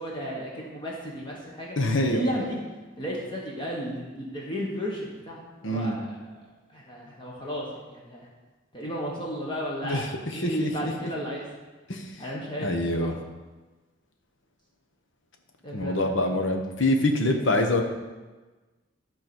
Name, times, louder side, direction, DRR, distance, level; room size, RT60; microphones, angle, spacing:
voice 1, 0.0-1.7 2.1-2.6 3.0-6.2 6.7-8.3 8.7-10.0 10.3-11.5 12.2-13.1 15.6-16.4, equal, 25° left, -4 dB, 1.4 m, -33 dB
voice 2, 1.8-2.2 5.6-6.0 9.8-10.1 10.3-10.9 11.9-12.1 12.6-13.1 15.7-17.8, left 1 dB, 65° left, 4 dB, 1.1 m, -25 dB
12.0 x 4.1 x 6.1 m, 1.2 s
head